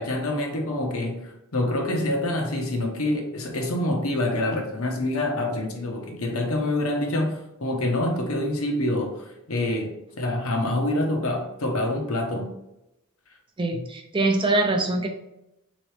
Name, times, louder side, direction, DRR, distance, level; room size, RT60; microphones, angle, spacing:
voice 1, 0.0-12.5 13.7-13.8, left 1 dB, 80° left, 2 dB, 0.8 m, -26 dB
voice 2, 13.6-15.1, right 2 dB, 25° right, 3 dB, 0.5 m, -23 dB
3.9 x 3.0 x 3.2 m, 0.88 s
head